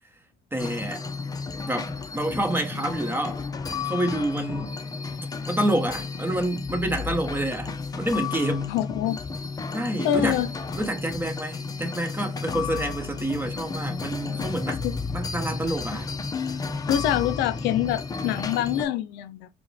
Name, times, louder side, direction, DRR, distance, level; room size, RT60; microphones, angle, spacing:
voice 1, 0.5-1.0 1.7-3.4 3.8-4.7 5.5-8.7 9.7-10.4 10.7-14.8 15.1-16.1 16.5-16.6, right 1 dB, 10° right, 1.1 m, -28 dB
sound 1, 0.6-18.8, left 4 dB, 20° left, 0.6 m, -32 dB
voice 2, 8.7-9.2 10.0-10.5 14.8-14.9 16.9-19.5, left 11 dB, 90° left, 0.5 m, -25 dB
4.6 x 2.3 x 3.3 m
cardioid pair, 110°, 17 cm